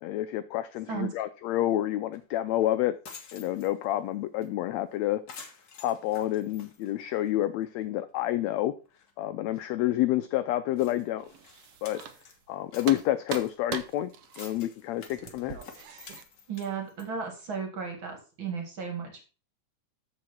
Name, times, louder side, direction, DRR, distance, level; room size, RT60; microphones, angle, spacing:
voice 1, 0.0-3.0 3.3-5.2 5.8-8.7 9.2-11.3 11.8-12.0 12.5-15.6, left 14 dB, 85° left, 11 dB, 1.5 m, -29 dB
sound 1, 2.1-2.2 2.6-2.7 3.0-3.9 4.4-4.5 4.8-5.0 5.3-7.4 7.8-7.9 8.5-8.6 8.9-9.1 9.5-9.6 10.2-10.3 10.7-12.4 12.7-17.1, left 5 dB, 50° left, 1.2 m, -49 dB
sound 2, 11.2-12.5 12.8-16.2, right 9 dB, 75° right, 1.4 m, -41 dB
voice 2, 16.5-19.2, right 6 dB, 45° right, 3 dB, 2.4 m, -35 dB
13.5 x 4.6 x 4.4 m, 0.35 s
omnidirectional pair, 3.6 m